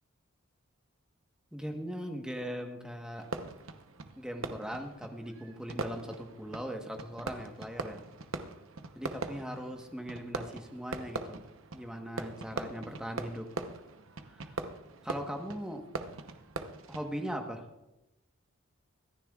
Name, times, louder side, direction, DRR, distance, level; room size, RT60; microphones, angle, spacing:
voice 1, 1.5-3.3 4.2-8.0 8.9-11.4 11.7-13.5 14.3-14.6 15.0-15.8 16.9-17.6, equal, 5° right, 3 dB, 1.2 m, -39 dB
Fireworks, 3.2-17.4, right 3 dB, 70° right, 0.9 m, -42 dB
25.5 x 10.5 x 2.4 m, 0.96 s
head